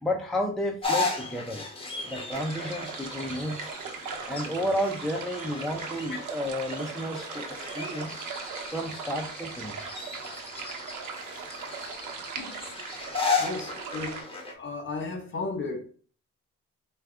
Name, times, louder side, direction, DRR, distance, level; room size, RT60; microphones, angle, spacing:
voice 1, 0.0-1.6 2.1-3.8 4.2-8.2 8.7-10.0, equal, ahead, 0.5 m, -32 dB
sound 1, 0.8-14.5, left 4 dB, 20° left, 1.1 m, -35 dB
sound 2, 2.3-14.2, right 5 dB, 80° right, 0.9 m, -39 dB
voice 2, 12.4-12.7 13.4-14.2 14.5-15.9, left 3 dB, 40° left, 1.4 m, -35 dB
4.5 x 2.3 x 3.6 m
cardioid pair, 90°, 30 cm